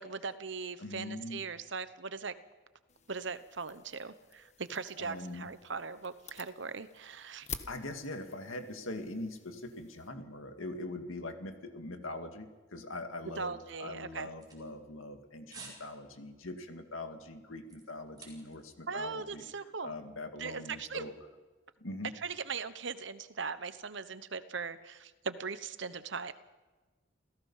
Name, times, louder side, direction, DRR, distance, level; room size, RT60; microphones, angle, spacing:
voice 1, 0.0-2.3 3.1-7.5 13.4-14.3 18.9-19.9 20.4-21.0 22.1-26.3, right 5 dB, 65° right, 13 dB, 1.0 m, -39 dB
voice 2, 0.8-1.4 5.0-5.5 7.7-19.4 19.8-21.1 21.8-22.1, left 2 dB, 80° left, 6 dB, 2.2 m, -42 dB
sound 1, 2.9-10.1, left 6 dB, 35° left, 1.2 m, -50 dB
sound 2, 14.1-15.2 15.5-15.8 16.2-16.4 16.9-18.7 19.0-19.1, right 4 dB, 20° right, 4.7 m, -51 dB
28.0 x 16.5 x 5.7 m, 1.2 s
head